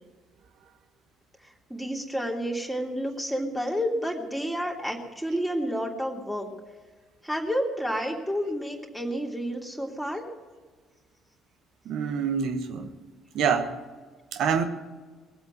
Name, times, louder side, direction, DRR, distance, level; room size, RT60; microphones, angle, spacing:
voice 1, 1.7-6.5 7.2-10.2, equal, ahead, 3.0 m, -30 dB
voice 2, 11.9-12.9 13.3-13.7 14.3-14.6, right 6 dB, 55° right, 1.3 m, -26 dB
21.0 x 8.0 x 7.9 m
figure-of-eight pair, 50°, 0 cm